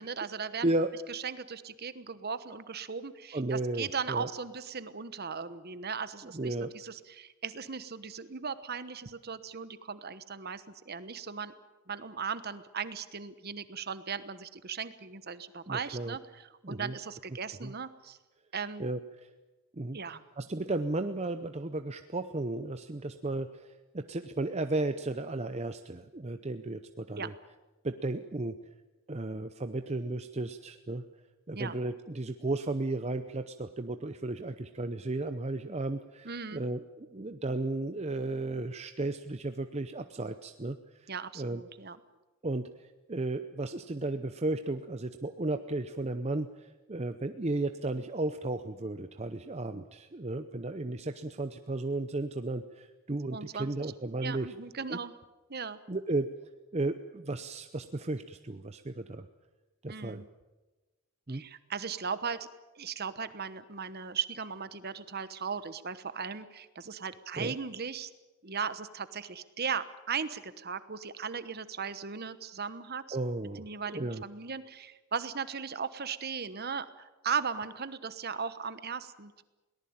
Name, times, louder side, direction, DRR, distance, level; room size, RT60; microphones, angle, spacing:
voice 1, 0.0-0.7 1.1-11.5 11.9-18.2 18.5-18.9 19.9-20.2 27.2-27.3 31.5-31.8 36.2-36.7 41.1-42.0 53.3-53.7 54.2-55.1 55.5-55.8 59.9-60.3 61.3-62.4 62.8-68.1 68.4-73.2 73.6-79.4, right 6 dB, 45° right, 13 dB, 1.1 m, -37 dB
voice 2, 3.3-4.3 6.2-6.7 15.7-16.2 16.6-17.0 17.6-17.7 18.8-19.3 19.7-20.0 20.4-27.3 27.8-28.6 29.1-31.0 31.5-41.6 42.4-54.5 54.9-55.0 55.9-56.3 56.7-59.3 59.8-60.2 61.3-61.4 67.4-67.6 73.1-73.6 73.9-74.2, right 2 dB, 30° right, 8 dB, 0.7 m, -34 dB
22.0 x 18.5 x 8.8 m, 1.2 s
head